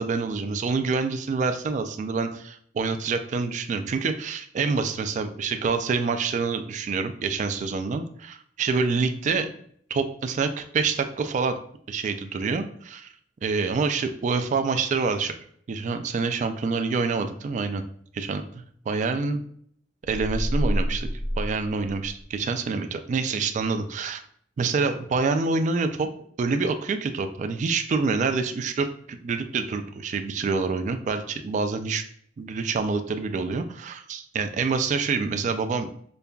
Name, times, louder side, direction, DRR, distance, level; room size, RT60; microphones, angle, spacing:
voice 1, 0.0-9.5 9.9-11.6 11.9-13.1 13.4-15.3 15.7-17.8 18.1-18.4 18.9-19.4 20.1-21.1 21.4-24.2 24.6-26.1 26.4-32.0 32.4-35.9, right 4 dB, 45° right, 8 dB, 0.3 m, -26 dB
sound 1, 20.0-22.4, equal, 15° left, 0.5 m, -28 dB
5.2 x 2.3 x 2.2 m, 0.63 s
head